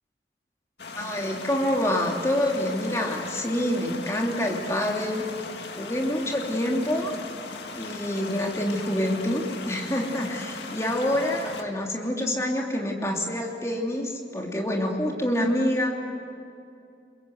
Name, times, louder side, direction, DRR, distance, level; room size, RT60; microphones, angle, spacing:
sound 1, 0.8-11.6, left 3 dB, 70° left, 2.0 m, -38 dB
voice 1, 0.9-5.2 5.8-7.1 7.7-15.9, left 1 dB, 15° left, 0 dB, 3.0 m, -27 dB
28.0 x 22.0 x 8.2 m, 2.5 s
head